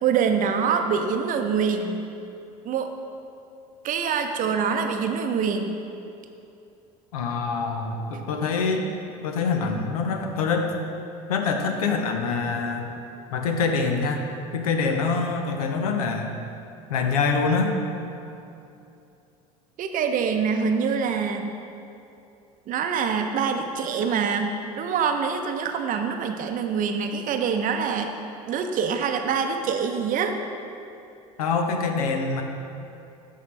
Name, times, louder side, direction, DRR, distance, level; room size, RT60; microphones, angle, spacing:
voice 1, 0.0-2.0 2.6-2.9 3.8-5.8 19.8-21.4 22.7-28.1 28.5-30.3, right 6 dB, 45° right, 5 dB, 0.6 m, -25 dB
voice 2, 7.1-8.9 9.2-10.7 11.3-12.9 13.3-14.2 14.5-16.3 16.9-17.8 31.4-32.4, left 4 dB, 85° left, 4 dB, 0.7 m, -25 dB
11.0 x 3.7 x 3.2 m, 2.7 s
hypercardioid pair, 75°, 19 cm